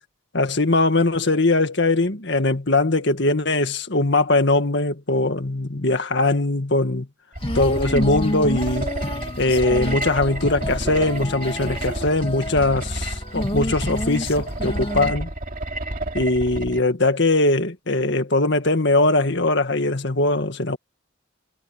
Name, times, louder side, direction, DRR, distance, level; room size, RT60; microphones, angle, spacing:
voice 1, 0.3-7.1 7.5-8.9 9.4-15.3 16.1-20.8, left 2 dB, 55° left, 1.9 m, -21 dB
sound 1, 7.3-16.8, right 1 dB, 40° right, 2.7 m, -30 dB
Female singing, 7.4-15.1, left 1 dB, 25° left, 2.5 m, -29 dB
head